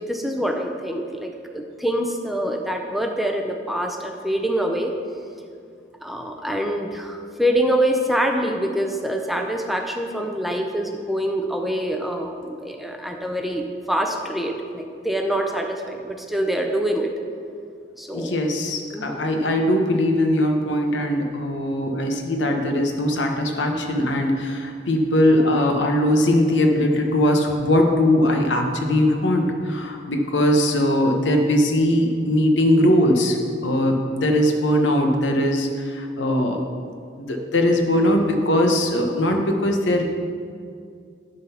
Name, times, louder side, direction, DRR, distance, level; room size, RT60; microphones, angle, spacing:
voice 1, 0.0-4.9 6.0-17.1 18.0-18.4 18.9-19.3, equal, ahead, 3 dB, 0.5 m, -25 dB
voice 2, 18.1-33.4 33.6-36.6 37.2-40.0, left 1 dB, 90° left, 3 dB, 1.0 m, -20 dB
11.0 x 4.0 x 5.6 m, 2.3 s
head